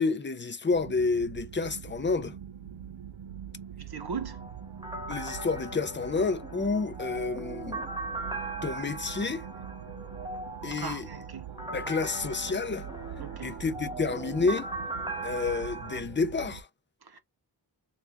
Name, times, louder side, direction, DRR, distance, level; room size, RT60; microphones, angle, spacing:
voice 1, 0.0-2.4 5.1-7.8 8.6-9.5 10.6-11.1 11.7-12.9 13.4-14.7 15.2-16.7, left 4 dB, 25° left, 0.5 m, -29 dB
sound 1, 0.7-16.6, right 9 dB, 85° right, 0.7 m, -44 dB
voice 2, 3.8-4.4 10.8-11.5 13.2-13.7 17.0-17.2, right 6 dB, 55° right, 0.9 m, -38 dB
sound 2, 4.0-16.0, right 2 dB, 10° right, 0.8 m, -39 dB
3.5 x 2.3 x 2.9 m
wide cardioid pair, 85°, 45 cm